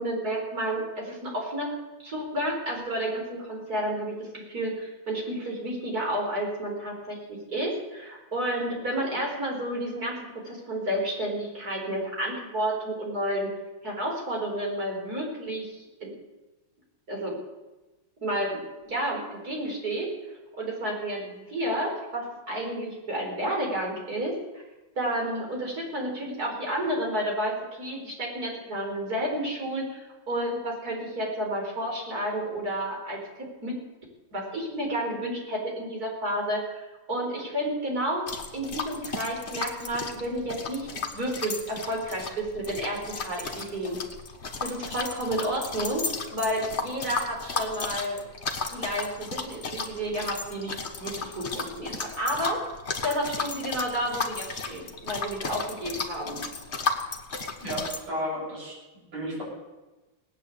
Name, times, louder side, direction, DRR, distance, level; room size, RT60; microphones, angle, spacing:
voice 1, 0.0-1.7 2.0-13.5 13.8-16.1 17.1-17.4 18.2-20.1 20.6-24.6 25.0-33.8 34.3-38.3 38.5-44.0 44.6-46.0 46.3-48.2 48.7-52.6 53.0-56.4, right 1 dB, 45° right, -1 dB, 4.8 m, -31 dB
sound 1, 38.3-58.0, left 4 dB, 35° left, 1.5 m, -34 dB
voice 2, 57.6-59.4, equal, 85° right, -5 dB, 7.8 m, -33 dB
18.0 x 9.5 x 8.3 m, 1.1 s
omnidirectional pair, 2.4 m